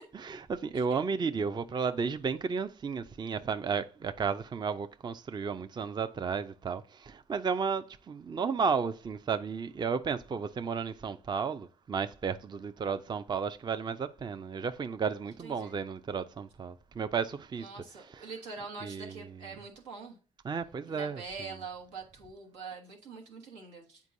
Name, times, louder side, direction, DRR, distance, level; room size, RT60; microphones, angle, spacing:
voice 1, 0.1-17.7 18.1-18.3 18.8-19.3 20.4-21.2, right 5 dB, 30° right, 0.5 m, -33 dB
voice 2, 15.4-15.8 17.6-20.2 20.8-24.0, right 4 dB, 90° right, 1.3 m, -44 dB
8.1 x 4.5 x 2.6 m
hypercardioid pair, 55°, 15 cm